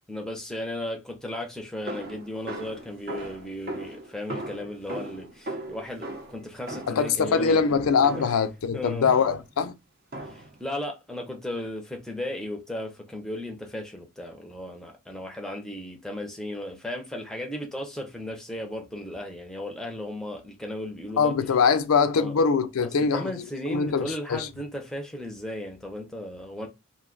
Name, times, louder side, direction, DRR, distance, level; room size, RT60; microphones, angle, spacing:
voice 1, 0.0-7.7 8.2-8.3 8.7-9.2 10.3-21.3 22.1-22.3 22.8-26.7, left 1 dB, 5° left, 0.6 m, -35 dB
sound 1, 1.9-8.5 9.0-9.5 10.1-10.6, right 1 dB, 45° right, 0.7 m, -38 dB
voice 2, 6.9-9.7 21.2-23.3 23.7-24.5, left 5 dB, 90° left, 0.5 m, -23 dB
2.6 x 2.2 x 3.7 m
head